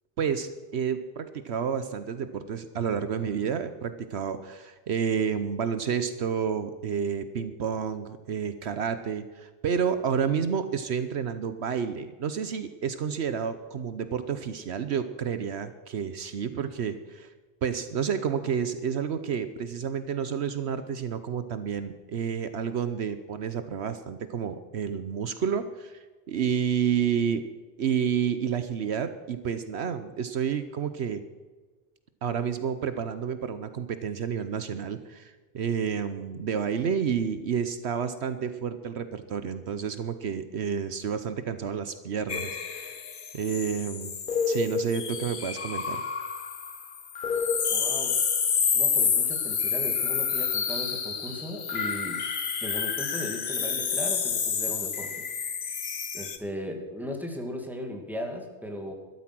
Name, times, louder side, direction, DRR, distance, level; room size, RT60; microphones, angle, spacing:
voice 1, 0.2-17.3 17.6-27.4 27.8-31.2 32.2-43.0 43.3-44.1 44.5-46.0, right 7 dB, 70° right, 11 dB, 1.1 m, -30 dB
sound 1, 42.3-56.4, left 6 dB, 50° left, 1.0 m, -29 dB
voice 2, 47.7-48.2 48.7-52.2 52.6-55.3 56.1-58.9, left 1 dB, ahead, 2 dB, 2.3 m, -37 dB
13.0 x 12.5 x 6.1 m, 1.3 s
omnidirectional pair, 1.2 m